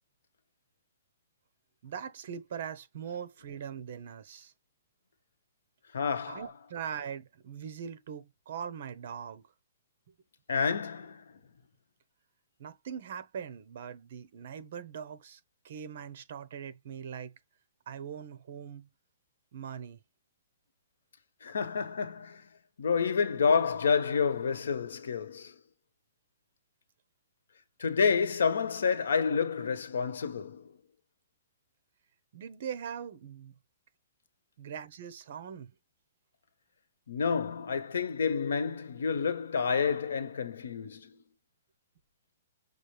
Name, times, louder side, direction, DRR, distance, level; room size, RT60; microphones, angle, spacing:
voice 1, 1.8-4.5 6.3-9.5 12.6-15.4 15.6-17.3 17.9-18.9 19.5-20.0 32.3-33.5 34.6-35.7, right 8 dB, 45° right, 1.0 m, -41 dB
voice 2, 5.9-6.4 10.5-11.2 21.4-22.4 22.8-25.5 27.8-30.7 37.1-41.2, left 6 dB, 85° left, 1.2 m, -29 dB
6.2 x 2.5 x 3.2 m
hypercardioid pair, 175°, 0 cm